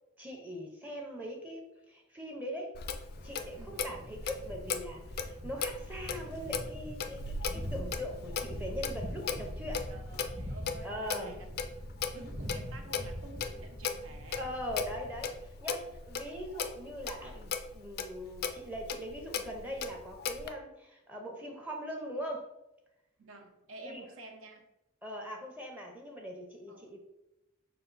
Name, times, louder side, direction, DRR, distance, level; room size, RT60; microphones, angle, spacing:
voice 1, 0.2-2.7 3.2-9.9 10.8-11.4 14.4-22.5 23.8-24.0 25.0-27.0, equal, 5° right, 1 dB, 0.6 m, -41 dB
Clock, 2.7-20.5, left 5 dB, 50° left, 0.4 m, -38 dB
Thunder, 3.1-16.4, equal, 40° right, 1.0 m, -44 dB
voice 2, 9.9-11.5 12.1-14.5 23.2-24.7 26.7-26.9, right 2 dB, 75° right, 3 dB, 0.8 m, -50 dB
5.5 x 2.4 x 3.9 m, 0.93 s
head